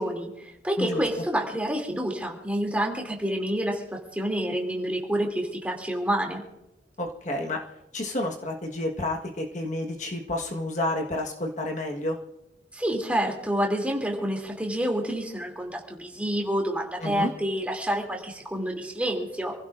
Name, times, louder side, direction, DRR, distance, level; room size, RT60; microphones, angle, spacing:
voice 1, 0.0-3.8 4.1-6.4 12.7-19.5, equal, 10° right, 0 dB, 2.8 m, -28 dB
voice 2, 7.0-7.6 7.9-12.2 17.0-17.3, left 1 dB, 40° left, 1 dB, 1.5 m, -30 dB
27.5 x 16.0 x 2.6 m, 0.89 s
head